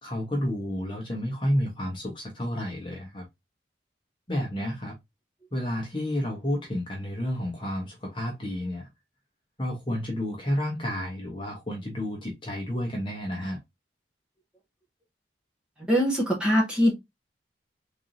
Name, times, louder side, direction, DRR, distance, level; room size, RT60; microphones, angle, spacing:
voice 1, 0.0-3.2 4.3-4.9 5.5-8.9 9.6-13.6, equal, 25° left, 1.0 m, -30 dB
voice 2, 15.9-16.9, equal, 5° right, 1.4 m, -22 dB
3.9 x 3.4 x 2.7 m
head